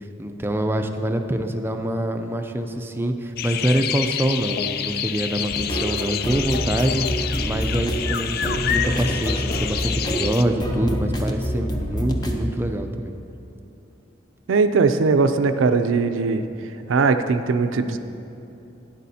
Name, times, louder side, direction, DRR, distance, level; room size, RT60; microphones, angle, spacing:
voice 1, 0.2-7.1 7.4-13.1, right 1 dB, 10° right, 6 dB, 0.4 m, -25 dB
sound 1, 3.4-10.4, left 9 dB, 50° left, 0.3 m, -28 dB
sound 2, 5.5-12.5, equal, 20° left, 0.7 m, -27 dB
voice 2, 14.5-16.5 16.9-18.0, right 4 dB, 80° right, 9 dB, 0.4 m, -19 dB
12.5 x 9.9 x 2.8 m, 2.9 s
head